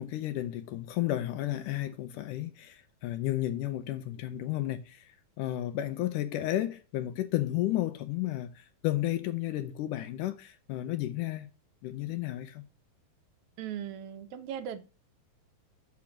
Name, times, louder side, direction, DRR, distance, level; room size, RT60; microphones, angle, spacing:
voice 1, 0.0-5.0 5.4-11.5 11.8-12.6, left 14 dB, 75° left, 2.0 m, -32 dB
voice 2, 13.6-14.8, right 9 dB, 75° right, 1.8 m, -38 dB
6.6 x 5.9 x 7.2 m
omnidirectional pair, 4.3 m